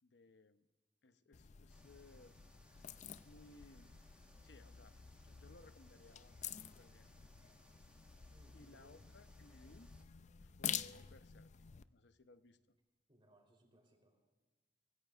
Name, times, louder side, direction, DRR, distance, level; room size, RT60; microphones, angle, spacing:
voice 1, 0.0-0.7 1.0-2.4 2.7-2.9 3.2-3.9 4.4-5.0 5.2-6.4 6.8-7.1 8.5-9.9 10.4-11.5 11.9-12.7, left 2 dB, 70° left, 11 dB, 0.8 m, -62 dB
sound 1, 1.3-11.8, left 9 dB, 40° left, 0.4 m, -49 dB
sound 2, 1.7-10.0, right 1 dB, 5° right, 1.4 m, -69 dB
voice 2, 8.3-8.9 13.1-14.2, right 1 dB, 30° right, 1 dB, 3.6 m, -68 dB
25.5 x 16.0 x 2.5 m, 1.3 s
head